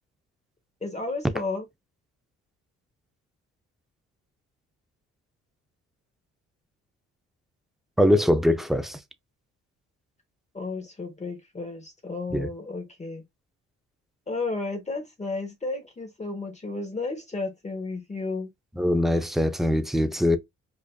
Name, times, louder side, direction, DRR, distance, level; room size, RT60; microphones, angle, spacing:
voice 1, 0.8-1.7 10.5-13.2 14.3-18.5, left 3 dB, 25° left, 1.0 m, -33 dB
voice 2, 8.0-9.0 12.3-12.5 18.8-20.4, left 1 dB, ahead, 0.4 m, -22 dB
5.0 x 2.5 x 2.2 m
cardioid pair, 90°, 30 cm